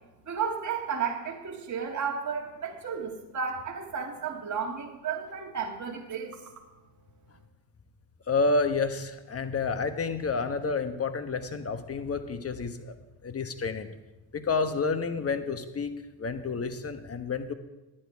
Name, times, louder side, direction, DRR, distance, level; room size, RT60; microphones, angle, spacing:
voice 1, 0.3-6.4, right 6 dB, 40° right, 0 dB, 2.0 m, -33 dB
voice 2, 8.3-12.9 13.2-13.9 14.3-17.5, left 4 dB, 30° left, 8 dB, 1.3 m, -29 dB
10.5 x 10.5 x 4.7 m, 1.1 s
supercardioid pair, 70°, 45 cm